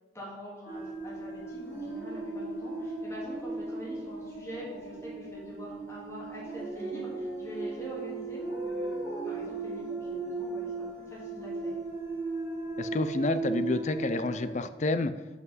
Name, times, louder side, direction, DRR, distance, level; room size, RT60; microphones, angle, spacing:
voice 1, 0.1-11.7, equal, 15° left, -6 dB, 3.0 m, -44 dB
sound 1, 0.7-14.5, right 3 dB, 15° right, 3.9 m, -36 dB
voice 2, 12.8-15.1, left 2 dB, 40° left, 11 dB, 0.5 m, -29 dB
8.1 x 5.9 x 7.4 m, 1.2 s
head